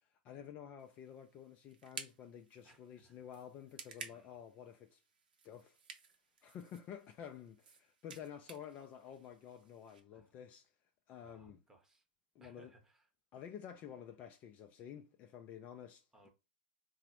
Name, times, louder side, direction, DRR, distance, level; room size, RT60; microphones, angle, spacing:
voice 1, 0.0-5.0 5.4-5.8 6.4-10.6 11.1-11.6 12.4-12.7 13.3-16.3, left 9 dB, 30° left, 0.3 m, -51 dB
sound 1, 0.8-10.0, right 5 dB, 70° right, 0.6 m, -55 dB
voice 2, 2.6-3.2 4.0-4.4 10.1-10.4 11.2-12.0 12.4-13.1 16.1-16.3, right 2 dB, 10° right, 0.8 m, -65 dB
3.6 x 2.0 x 2.9 m
figure-of-eight pair, 105°, 5 cm